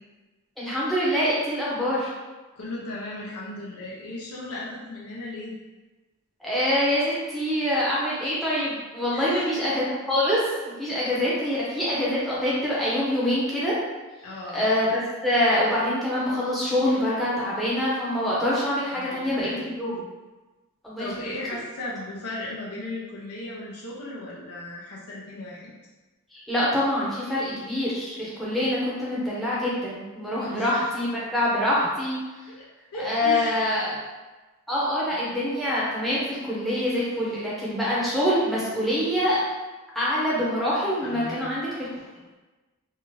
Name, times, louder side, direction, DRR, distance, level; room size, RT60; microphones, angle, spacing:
voice 1, 0.6-2.1 6.4-13.8 14.5-19.9 20.8-21.1 26.3-32.2 33.0-33.9 34.7-39.4 39.9-42.0, left 1 dB, ahead, -8 dB, 0.6 m, -25 dB
voice 2, 2.6-5.6 9.1-9.4 14.2-14.7 18.9-20.0 21.0-25.7 30.4-30.7 32.5-32.7 32.9-33.6 41.0-41.4, left 2 dB, 90° left, -5 dB, 0.8 m, -36 dB
2.8 x 2.4 x 3.1 m, 1.2 s
head